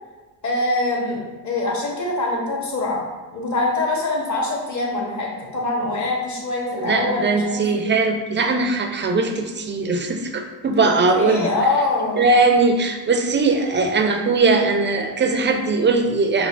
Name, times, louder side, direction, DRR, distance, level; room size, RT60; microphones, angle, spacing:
voice 1, 0.4-3.0 3.3-8.0 10.7-12.3, left 2 dB, 40° left, -1 dB, 1.1 m, -24 dB
voice 2, 6.8-11.5 12.2-16.5, right 3 dB, 25° right, 4 dB, 0.4 m, -20 dB
5.4 x 2.1 x 2.4 m, 1.3 s
supercardioid pair, 65°, 45 cm